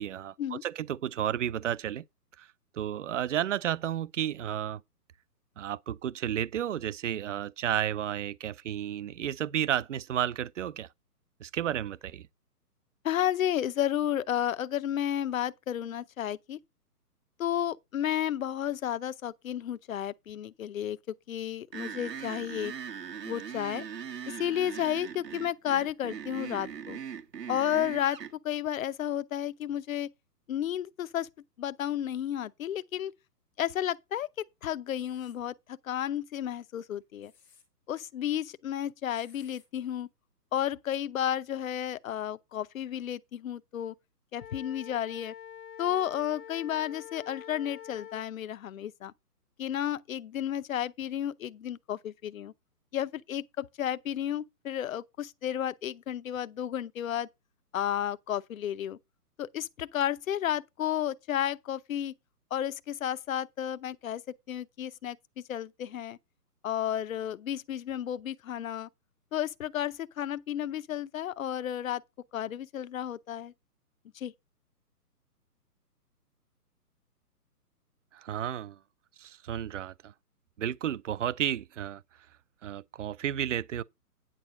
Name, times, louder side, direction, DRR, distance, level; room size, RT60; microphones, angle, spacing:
voice 1, 0.0-2.0 2.4-2.5 2.7-4.8 5.6-10.9 11.4-12.3 78.1-78.8 79.2-80.1 80.6-82.0 82.6-83.8, right 10 dB, 50° right, 0.5 m, -32 dB
voice 2, 13.0-16.6 17.4-22.7 23.2-23.8 24.3-27.0 27.5-30.1 30.5-31.3 31.6-33.1 33.6-37.3 37.9-40.1 40.5-43.9 44.3-45.3 45.8-49.1 49.6-52.5 52.9-57.3 57.7-59.0 59.4-62.1 62.5-65.2 65.5-66.2 66.6-68.9 69.3-72.0 72.3-73.5 74.1-74.3, left 11 dB, 60° left, 0.7 m, -32 dB
sound 1, 21.7-28.3, right 7 dB, 90° right, 1.5 m, -40 dB
sound 2, 34.9-35.4 37.0-37.6 39.1-39.7, left 6 dB, 5° left, 0.7 m, -61 dB
Wind instrument woodwind instrument, 44.3-48.2, left 9 dB, 80° left, 1.5 m, -46 dB
9.9 x 4.3 x 7.0 m
hypercardioid pair, 160°, 47 cm